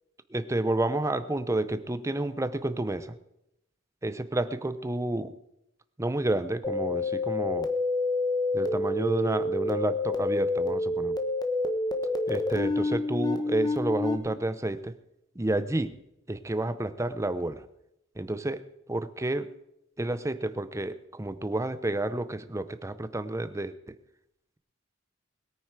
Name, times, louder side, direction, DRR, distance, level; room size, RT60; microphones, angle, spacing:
voice 1, 0.3-3.2 4.0-5.3 6.0-7.7 8.5-11.2 12.3-15.0 15.4-16.0 16.3-17.6 18.2-19.5 20.0-24.0, right 1 dB, 15° right, 13 dB, 0.6 m, -30 dB
sound 1, 6.6-14.2, left 2 dB, 20° left, 1.2 m, -28 dB
21.0 x 9.2 x 4.8 m, 0.84 s
head